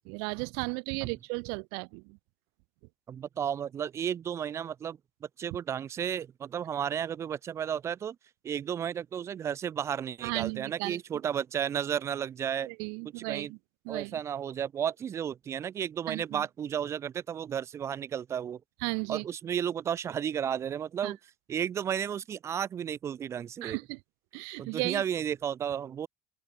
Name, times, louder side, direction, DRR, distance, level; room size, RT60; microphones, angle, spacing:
voice 1, 0.1-2.2 10.2-11.0 12.6-13.6 13.8-14.2 16.1-16.4 18.8-19.2 21.0-21.1 23.6-24.0 24.3-25.0, right 40 dB or more, 60° right, 0.8 m, -35 dB
voice 2, 3.1-5.0 5.4-8.2 8.4-12.7 13.2-13.5 13.9-18.6 19.1-21.2 21.5-23.8 24.6-26.1, right 8 dB, 40° right, 3.2 m, -33 dB
open air
figure-of-eight pair, 65°, 7 cm